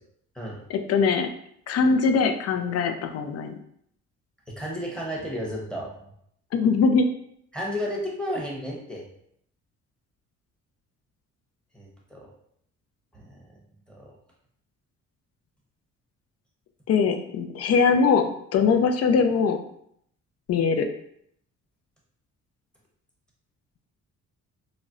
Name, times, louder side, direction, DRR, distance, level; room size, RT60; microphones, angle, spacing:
voice 1, 0.7-1.3 1.7-3.5 6.5-7.1 16.9-19.6 20.5-20.9, left 5 dB, 55° left, 6 dB, 0.5 m, -22 dB
voice 2, 4.5-5.9 7.5-9.0 11.7-12.3 13.1-13.6 13.9-14.2, equal, 5° left, -3 dB, 0.9 m, -33 dB
4.0 x 2.0 x 2.5 m, 0.70 s
cardioid pair, 90°, 30 cm